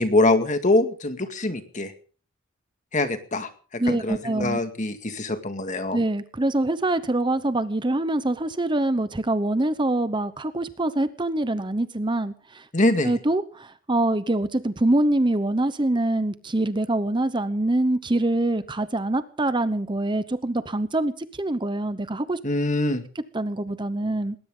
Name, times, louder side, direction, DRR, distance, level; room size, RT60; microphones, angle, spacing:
voice 1, 0.0-1.9 2.9-6.0 12.7-13.1 22.4-23.0, left 2 dB, 35° left, 8 dB, 2.1 m, -24 dB
voice 2, 3.8-4.6 5.9-12.7 13.0-22.4 23.3-24.4, right 1 dB, 20° right, 13 dB, 0.8 m, -24 dB
20.0 x 18.0 x 3.8 m, 0.42 s
head